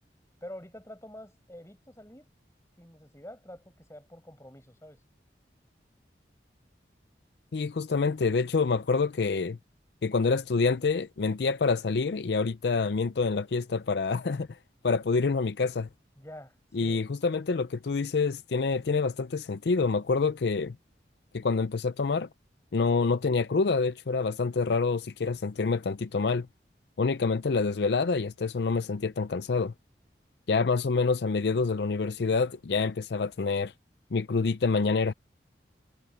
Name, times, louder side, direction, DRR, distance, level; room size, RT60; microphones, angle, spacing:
voice 1, 0.4-2.3 2.8-5.0 16.2-17.0, left 1 dB, 15° left, 6.5 m, -47 dB
voice 2, 7.5-9.6 10.0-14.5 14.8-15.9 16.7-20.8 21.3-22.3 22.7-26.5 27.0-29.7 30.5-33.7 34.1-35.1, left 4 dB, 70° left, 0.5 m, -27 dB
head